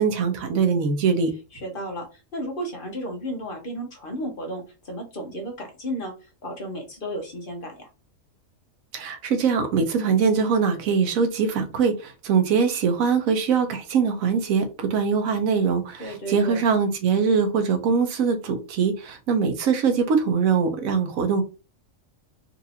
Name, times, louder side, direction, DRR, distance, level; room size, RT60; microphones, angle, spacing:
voice 1, 0.0-1.3 8.9-21.4, right 6 dB, 80° right, 1.1 m, -22 dB
voice 2, 1.5-7.9 16.0-16.6, equal, 45° left, 0.9 m, -33 dB
4.0 x 2.5 x 2.7 m
omnidirectional pair, 1.4 m